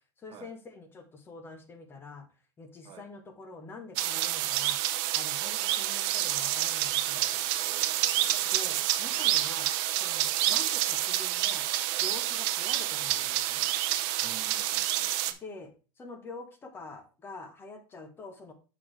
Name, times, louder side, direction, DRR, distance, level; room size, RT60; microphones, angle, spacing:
voice 1, 0.2-2.3 2.6-4.8 5.1-7.4 8.5-9.7 10.0-11.7 12.0-13.7 15.4-18.5, left 3 dB, 15° left, 1.0 m, -46 dB
sound 1, 4.0-15.3, right 14 dB, 50° right, 0.6 m, -28 dB
voice 2, 7.5-8.9 14.2-15.4, right 8 dB, 25° right, 0.9 m, -51 dB
6.8 x 6.0 x 3.2 m
supercardioid pair, 160°, 15 cm